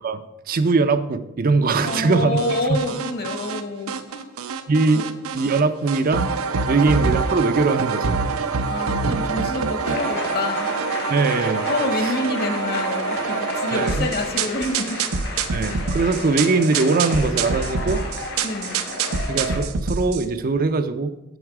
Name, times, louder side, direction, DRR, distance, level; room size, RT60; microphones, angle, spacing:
voice 1, 0.0-2.4 2.7-2.8 4.7-5.0 5.3-6.3 6.7-8.2 11.1-11.6 13.7-14.1 15.5-18.0 19.3-21.2, right 3 dB, 40° right, 9 dB, 0.5 m, -21 dB
voice 2, 1.8-4.3 4.9-5.0 6.7-6.9 8.6-10.7 11.7-15.0 15.5-15.7 18.4-18.8, left 2 dB, 50° left, 5 dB, 1.2 m, -27 dB
sound 1, 1.9-3.6 3.9-5.6 5.9-20.2, right 5 dB, 85° right, 0.7 m, -26 dB
sound 2, 9.8-19.6, left 2 dB, 70° left, 2.7 m, -32 dB
7.9 x 7.2 x 4.9 m, 0.94 s
head